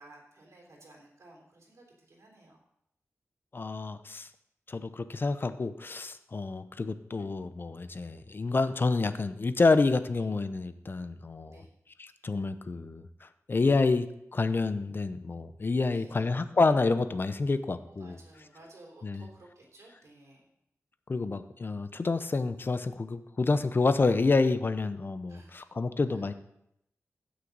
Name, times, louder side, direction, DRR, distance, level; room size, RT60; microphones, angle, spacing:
voice 1, 0.0-2.6 10.1-10.3 11.5-11.7 15.9-16.3 17.8-20.5 25.3-25.6 26.1-26.3, right 2 dB, 70° right, -1 dB, 3.3 m, -55 dB
voice 2, 3.5-4.3 4.7-11.6 12.0-18.2 19.0-19.3 21.1-26.3, left 3 dB, 40° left, 11 dB, 0.7 m, -28 dB
15.5 x 6.4 x 4.0 m, 0.78 s
wide cardioid pair, 90°, 5 cm